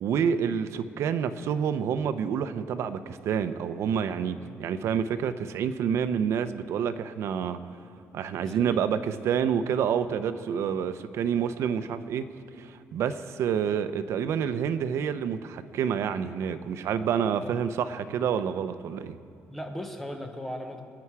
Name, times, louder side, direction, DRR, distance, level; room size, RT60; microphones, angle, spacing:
voice 1, 0.0-7.6 8.1-12.3 12.6-19.2, right 7 dB, 65° right, 11 dB, 0.7 m, -28 dB
voice 2, 8.3-8.8 17.4-17.6 19.5-20.8, equal, 5° left, 4 dB, 1.0 m, -38 dB
26.5 x 9.8 x 4.8 m, 2.4 s
cardioid pair, 175°, 5 cm